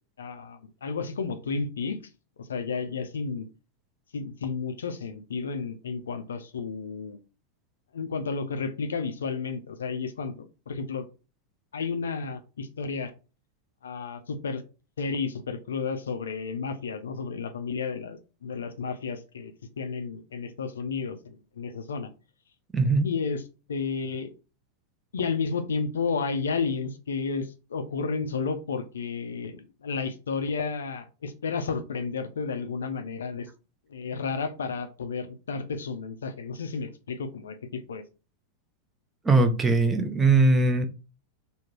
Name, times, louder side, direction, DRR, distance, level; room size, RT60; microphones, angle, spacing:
voice 1, 0.2-2.0 2.4-3.5 4.1-7.2 7.9-11.1 11.7-13.1 13.8-14.6 15.0-22.1 23.0-23.4 23.7-24.3 25.1-33.5 33.9-38.0, left 5 dB, 65° left, 0.4 m, -32 dB
voice 2, 22.7-23.1 39.2-40.9, right 3 dB, 15° right, 0.5 m, -20 dB
3.5 x 2.2 x 3.0 m
figure-of-eight pair, 90°, 0 cm